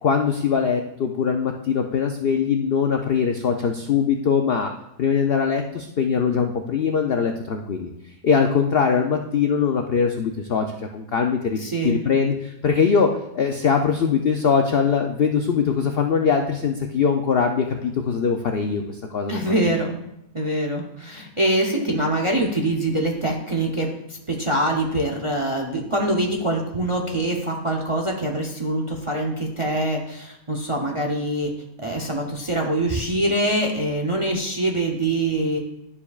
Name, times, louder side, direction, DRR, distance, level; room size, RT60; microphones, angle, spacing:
voice 1, 0.0-4.7 5.0-7.9 8.2-10.7 10.9-19.7, left 6 dB, 90° left, 4 dB, 0.5 m, -22 dB
voice 2, 11.6-12.0 19.3-20.0 20.3-31.5 31.8-35.6, right 1 dB, 35° right, 1 dB, 0.5 m, -24 dB
11.0 x 7.1 x 2.4 m, 0.82 s
omnidirectional pair, 1.7 m